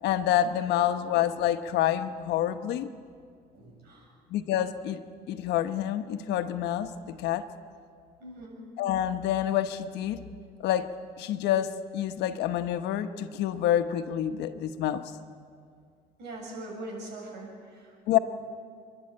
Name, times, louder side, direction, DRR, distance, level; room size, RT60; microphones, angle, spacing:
voice 1, 0.0-2.9 4.3-5.0 5.3-6.9 7.2-7.4 8.8-10.2 10.6-10.9 11.2-15.1 18.1-18.2, left 11 dB, 85° left, 9 dB, 1.1 m, -27 dB
voice 2, 3.5-4.1 8.2-8.6 16.2-18.2, right 2 dB, 80° right, 0 dB, 7.4 m, -42 dB
29.0 x 11.5 x 8.7 m, 2.2 s
cardioid pair, 110°, 17 cm